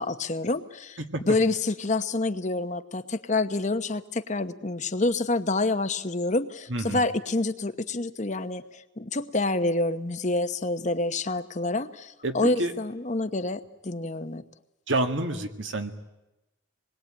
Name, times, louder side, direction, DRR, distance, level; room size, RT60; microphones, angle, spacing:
voice 1, 0.0-1.0 1.3-14.4, left 2 dB, 35° left, 10 dB, 1.0 m, -27 dB
voice 2, 6.7-7.0 12.2-12.7 14.9-15.9, right 2 dB, 65° right, 6 dB, 2.0 m, -28 dB
26.5 x 21.0 x 8.9 m, 0.96 s
head